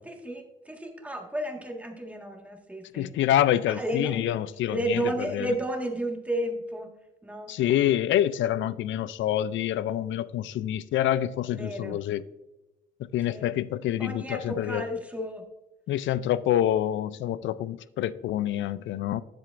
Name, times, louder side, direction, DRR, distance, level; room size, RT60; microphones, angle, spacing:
voice 1, 0.0-3.1 3.7-4.2 4.7-6.9 7.2-7.5 11.5-12.0 13.3-13.5 14.0-15.5, right 1 dB, 5° right, 1.6 m, -32 dB
voice 2, 2.9-5.5 7.5-12.2 13.1-14.8 15.9-19.2, left 12 dB, 70° left, 0.4 m, -27 dB
10.5 x 7.6 x 2.5 m
cardioid pair, 90°, 20 cm